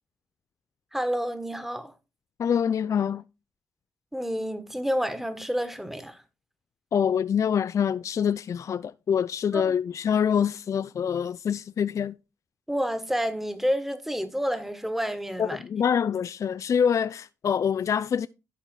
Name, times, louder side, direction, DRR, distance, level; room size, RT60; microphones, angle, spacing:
voice 1, 0.9-1.9 4.1-6.2 9.5-9.6 12.7-15.6, equal, 5° right, 1.5 m, -29 dB
voice 2, 2.4-3.2 6.9-12.2 15.4-18.3, left 7 dB, 55° left, 0.3 m, -25 dB
11.5 x 4.3 x 4.5 m
supercardioid pair, 50°, 7 cm